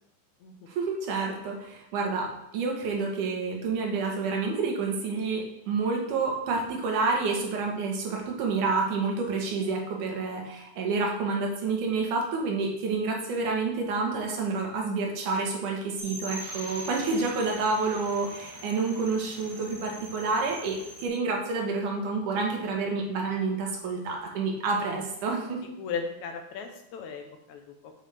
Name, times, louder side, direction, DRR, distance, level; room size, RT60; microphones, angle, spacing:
voice 1, 0.7-25.6, right 4 dB, 80° right, 0 dB, 2.8 m, -29 dB
sound 1, 16.0-21.1, equal, 40° right, 2.5 m, -42 dB
voice 2, 25.8-27.9, left 5 dB, 75° left, 5 dB, 2.2 m, -36 dB
8.5 x 7.9 x 3.5 m, 0.84 s
omnidirectional pair, 3.6 m